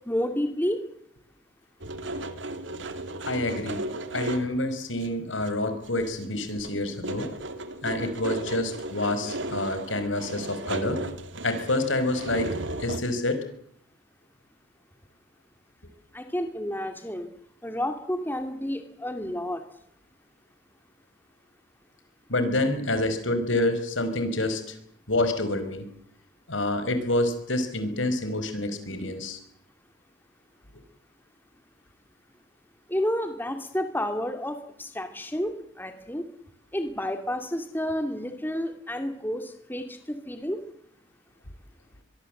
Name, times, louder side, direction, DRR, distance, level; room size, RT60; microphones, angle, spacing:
voice 1, 0.1-0.8 16.1-17.3 17.6-19.6 32.9-36.2 36.7-40.6, left 1 dB, 10° left, 7 dB, 2.4 m, -30 dB
sound 1, 1.8-4.6 5.0-5.1 5.4-6.2 6.5-13.0, right 2 dB, 70° right, 2.5 m, -35 dB
voice 2, 3.3-3.8 4.1-7.3 7.8-11.0 11.4-13.4 22.3-24.7 25.1-25.8 26.5-29.4, left 2 dB, 80° left, 9 dB, 5.1 m, -27 dB
24.5 x 22.5 x 7.8 m, 0.71 s
head